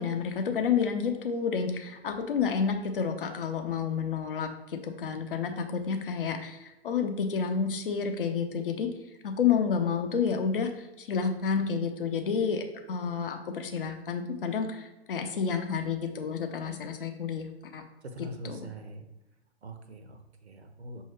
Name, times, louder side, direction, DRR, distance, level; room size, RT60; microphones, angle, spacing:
voice 1, 0.0-8.9 9.2-17.8 18.4-18.6, left 6 dB, 55° left, 5 dB, 0.6 m, -30 dB
voice 2, 18.0-19.1 19.6-21.0, right 1 dB, 75° right, 6 dB, 0.7 m, -43 dB
5.6 x 2.7 x 3.2 m, 0.99 s
figure-of-eight pair, 115°, 33 cm